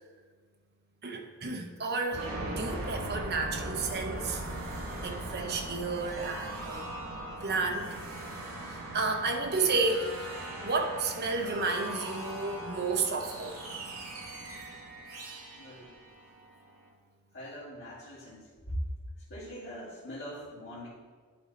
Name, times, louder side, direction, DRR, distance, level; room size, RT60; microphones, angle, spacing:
voice 1, 1.0-4.4 5.0-6.8 7.4-7.9 8.7-10.1 10.6-13.6, right 3 dB, 50° right, 3 dB, 0.9 m, -31 dB
sound 1, 2.1-16.8, right 1 dB, 80° right, 2.3 m, -40 dB
voice 2, 15.5-15.9 17.3-18.8 19.3-20.9, equal, 55° left, -13 dB, 2.4 m, -42 dB
11.5 x 3.8 x 4.3 m, 1.5 s
head